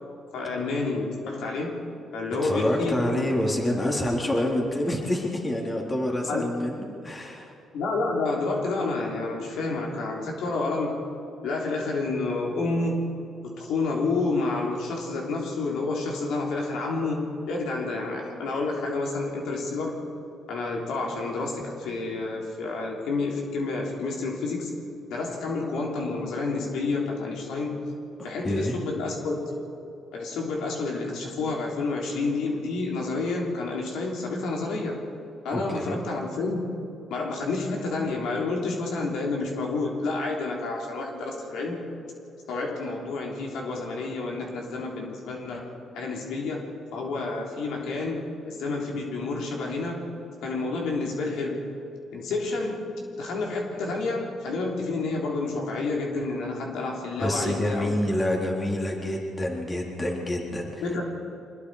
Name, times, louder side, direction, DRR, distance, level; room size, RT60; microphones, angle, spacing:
voice 1, 0.3-1.9 2.1-3.4 6.3-6.7 7.7-11.1 11.4-20.0 20.5-24.7 25.1-27.8 28.2-29.6 30.1-35.0 35.4-36.8 37.1-41.9 42.5-50.1 50.4-51.6 52.1-57.9 60.8-61.0, left 3 dB, 85° left, -1 dB, 3.4 m, -29 dB
voice 2, 2.4-7.5 28.2-28.8 35.5-36.0 57.2-60.8, left 1 dB, 25° left, -1 dB, 3.8 m, -27 dB
25.0 x 21.0 x 5.0 m, 2.7 s
cardioid pair, 90°, 0 cm